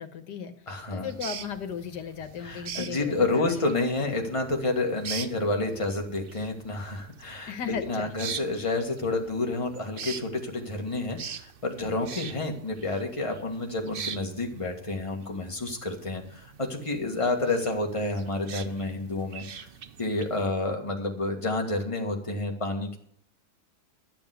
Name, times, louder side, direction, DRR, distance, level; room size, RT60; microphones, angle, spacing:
voice 1, 0.0-0.5 0.9-3.6 4.0-4.2 7.5-8.1 11.8-12.3, left 7 dB, 80° left, 8 dB, 1.8 m, -36 dB
voice 2, 0.7-1.1 2.4-19.7 20.0-23.0, left 2 dB, 20° left, 2 dB, 1.8 m, -29 dB
sound 1, 1.0-20.5, right 7 dB, 55° right, 0.6 m, -43 dB
12.0 x 7.0 x 8.2 m, 0.65 s
omnidirectional pair, 1.8 m